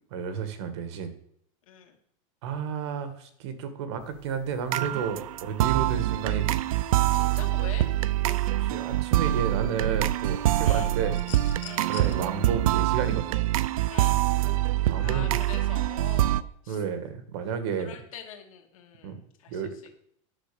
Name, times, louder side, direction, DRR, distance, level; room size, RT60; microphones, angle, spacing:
voice 1, 0.1-1.1 2.4-6.6 8.6-11.2 11.9-13.4 14.9-15.4 16.7-18.0 19.0-19.2 19.5-19.7, right 6 dB, 55° right, 10 dB, 1.6 m, -32 dB
voice 2, 1.7-2.0 7.1-7.9 10.6-11.0 11.6-12.0 13.9-14.2 14.9-16.8 17.8-19.7, left 9 dB, 80° left, 3 dB, 2.5 m, -44 dB
sound 1, 4.0-13.2, right 1 dB, 40° left, 1.3 m, -53 dB
sound 2, 4.7-16.4, right 14 dB, 85° right, 0.6 m, -25 dB
sound 3, 11.1-12.1 13.7-13.8, left 10 dB, 60° left, 1.8 m, -43 dB
10.5 x 6.5 x 6.8 m, 0.68 s
supercardioid pair, 180°, 17 cm